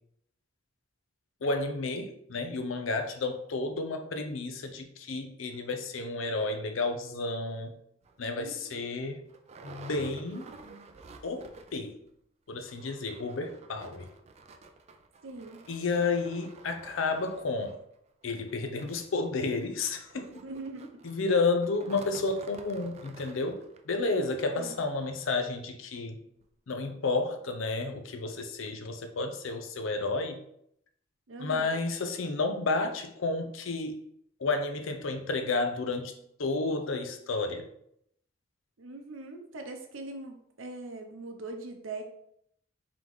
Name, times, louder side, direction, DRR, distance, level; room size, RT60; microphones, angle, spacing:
voice 1, 1.4-7.8 8.2-9.3 9.6-10.4 11.2-12.0 12.5-14.1 15.7-17.8 18.2-20.4 21.0-26.2 26.7-30.4 31.4-34.0 34.4-36.1 36.4-37.7, left 3 dB, 80° left, 7 dB, 0.6 m, -31 dB
sound 1, 8.0-8.2 8.7-8.8 9.0-11.9 12.2-12.3 12.6-25.4 25.9-26.0 26.4-26.5, right 3 dB, 35° right, 0.3 m, -51 dB
voice 2, 8.4-8.8 15.2-15.6 20.4-20.9 24.6-24.8 31.3-31.7 38.8-42.0, right 2 dB, 85° right, 5 dB, 0.7 m, -41 dB
3.8 x 3.5 x 3.1 m, 0.73 s
head